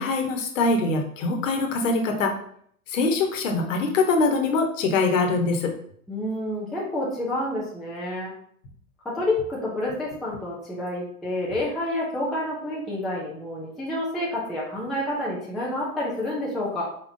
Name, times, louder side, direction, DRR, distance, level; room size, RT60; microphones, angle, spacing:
voice 1, 0.0-2.3 2.9-5.7, left 3 dB, 55° left, 3 dB, 1.2 m, -23 dB
voice 2, 6.1-8.3 9.1-16.8, left 1 dB, ahead, -6 dB, 0.4 m, -29 dB
4.4 x 3.7 x 2.6 m, 0.63 s
hypercardioid pair, 115°, 46 cm